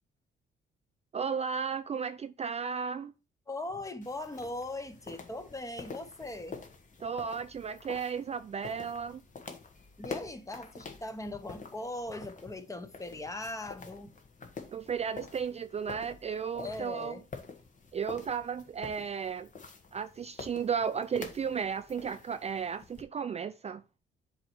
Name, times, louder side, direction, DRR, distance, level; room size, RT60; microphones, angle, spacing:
voice 1, 1.1-3.1 7.0-9.2 14.7-17.2 17.9-19.5 19.9-23.8, right 6 dB, 35° right, 0.4 m, -34 dB
voice 2, 3.5-6.6 10.0-14.2 16.5-17.2, left 2 dB, 15° left, 1.1 m, -40 dB
sound 1, 4.0-23.0, left 4 dB, 40° left, 1.3 m, -48 dB
7.6 x 3.1 x 6.2 m
cardioid pair, 90°, 20 cm